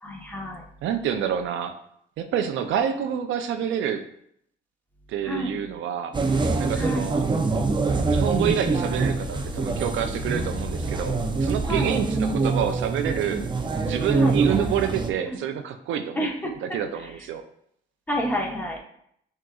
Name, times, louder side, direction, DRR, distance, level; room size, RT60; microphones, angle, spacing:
voice 1, 0.0-0.6 5.2-5.5 6.8-7.1 11.7-11.9 14.1-14.4 15.3-15.4 16.2-16.5 18.1-18.8, equal, 10° left, -1 dB, 1.0 m, -29 dB
voice 2, 0.8-1.8 2.2-4.0 5.1-6.1 6.6-7.2 8.1-13.4 13.8-17.4, right 9 dB, 80° right, 8 dB, 0.5 m, -28 dB
sound 1, 6.1-15.1, right 3 dB, 25° right, 0.5 m, -25 dB
6.0 x 3.7 x 2.3 m, 0.70 s
cardioid pair, 90°, 20 cm